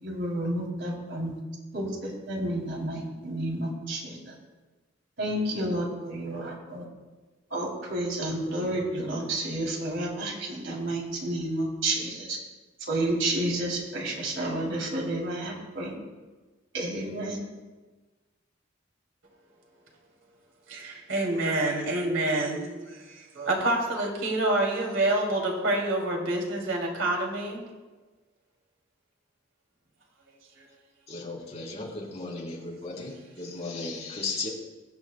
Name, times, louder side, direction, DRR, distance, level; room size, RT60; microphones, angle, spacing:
voice 1, 0.0-1.3 1.7-4.3 5.2-6.8 7.5-12.4 12.9-15.9 16.7-17.4, right 1 dB, 65° right, -2 dB, 3.0 m, -30 dB
voice 2, 20.7-27.6 30.6-30.7, right 2 dB, 90° right, -1 dB, 2.7 m, -27 dB
voice 3, 31.1-34.5, left 3 dB, 35° left, -4 dB, 3.4 m, -35 dB
22.5 x 8.7 x 2.2 m, 1.3 s
head